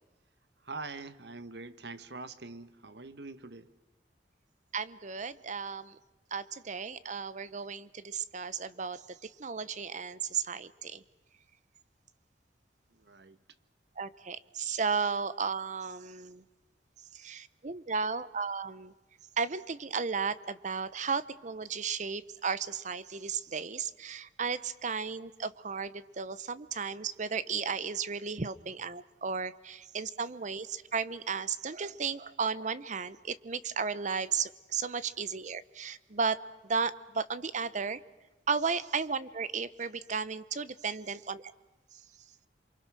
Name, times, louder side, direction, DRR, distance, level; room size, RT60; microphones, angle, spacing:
voice 1, 0.6-3.7 12.9-13.4, right 3 dB, 65° right, 13 dB, 1.1 m, -44 dB
voice 2, 4.7-6.0 6.3-11.0 14.0-16.4 17.1-18.9 19.4-38.0 38.5-41.4 41.9-42.0, right 5 dB, 40° right, 16 dB, 0.8 m, -34 dB
28.0 x 24.5 x 6.1 m, 1.1 s
head